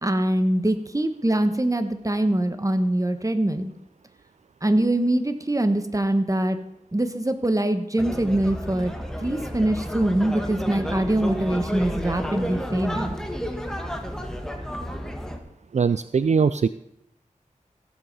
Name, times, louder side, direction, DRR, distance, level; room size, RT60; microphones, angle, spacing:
voice 1, 0.0-3.7 4.6-6.6 6.9-8.9 9.2-13.1, right 1 dB, 25° right, 9 dB, 1.4 m, -23 dB
sound 1, 8.0-15.4, equal, 5° left, 1.8 m, -31 dB
voice 2, 15.7-16.7, right 5 dB, 60° right, 13 dB, 0.4 m, -21 dB
15.5 x 7.9 x 5.5 m, 0.77 s
cardioid pair, 45°, 14 cm